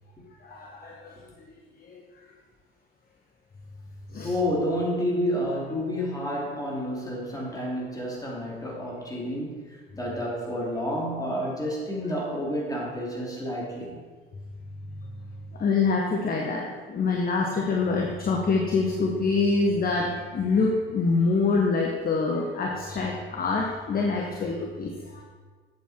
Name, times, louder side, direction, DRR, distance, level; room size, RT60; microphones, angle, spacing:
voice 1, 0.4-1.1 1.8-2.0 4.1-4.3 15.5-25.2, left 4 dB, 30° left, 0 dB, 1.1 m, -25 dB
voice 2, 4.2-9.7 9.9-14.0, equal, 10° left, -4 dB, 3.0 m, -29 dB
8.2 x 7.1 x 4.5 m, 1.5 s
figure-of-eight pair, 55°, 30 cm